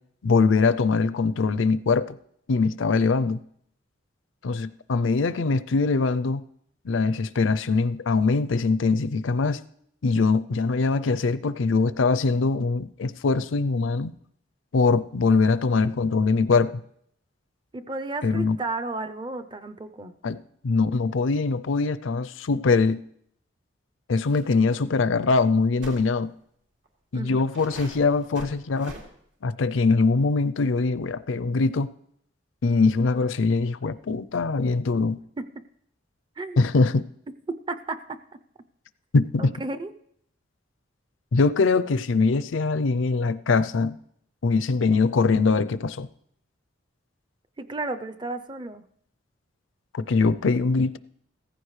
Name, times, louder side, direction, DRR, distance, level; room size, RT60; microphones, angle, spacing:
voice 1, 0.2-2.2 2.5-3.4 4.4-6.4 6.8-9.6 10.0-14.1 14.7-16.7 18.2-18.6 20.2-20.4 20.6-23.0 24.1-26.3 27.1-28.9 29.4-31.9 32.6-35.2 36.6-37.0 39.1-39.5 41.3-44.0 44.4-46.1 49.9-51.0, left 4 dB, 75° left, 0.5 m, -22 dB
voice 2, 17.7-20.1 27.1-27.4 35.4-35.5 36.4-36.7 37.7-38.1 39.4-39.9 47.6-48.8, right 3 dB, 25° right, 0.5 m, -33 dB
sound 1, 24.3-24.5 24.7-24.8 25.8-26.1 26.9-27.0 27.5-29.0, right 2 dB, 70° right, 2.6 m, -42 dB
16.0 x 14.5 x 3.2 m
head